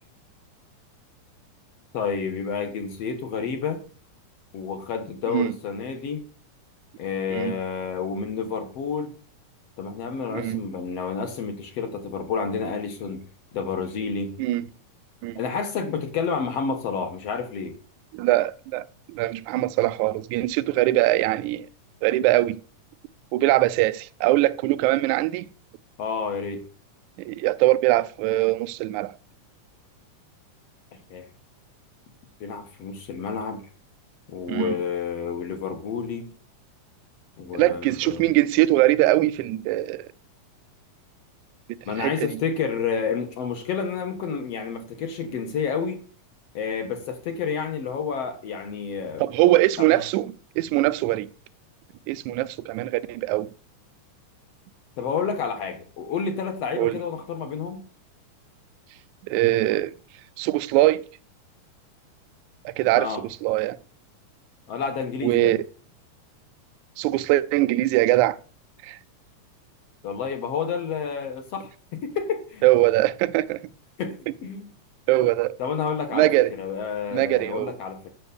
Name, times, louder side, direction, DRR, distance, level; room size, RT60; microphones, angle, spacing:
voice 1, 1.9-3.8 4.5-6.2 7.0-9.1 9.8-13.2 13.5-14.3 15.4-17.8 26.0-26.6 31.1-31.3 32.4-33.6 34.3-36.3 37.4-38.3 41.9-46.0 46.5-49.2 49.8-50.0 55.0-57.8 62.9-63.2 64.7-65.5 70.0-72.6 74.0-74.7 75.6-78.1, left 6 dB, 60° left, 2.0 m, -29 dB
voice 2, 18.1-21.7 22.0-22.6 23.3-25.5 27.2-29.1 34.5-34.8 37.5-40.1 42.0-42.4 49.2-51.3 52.1-53.5 56.7-57.0 59.2-60.0 60.4-61.1 62.7-63.8 65.2-65.6 67.0-68.4 68.8-69.0 72.6-73.6 75.1-75.6 76.1-76.5 77.1-77.7, right 16 dB, 80° right, 1.8 m, -22 dB
7.3 x 6.9 x 6.9 m
omnidirectional pair, 3.8 m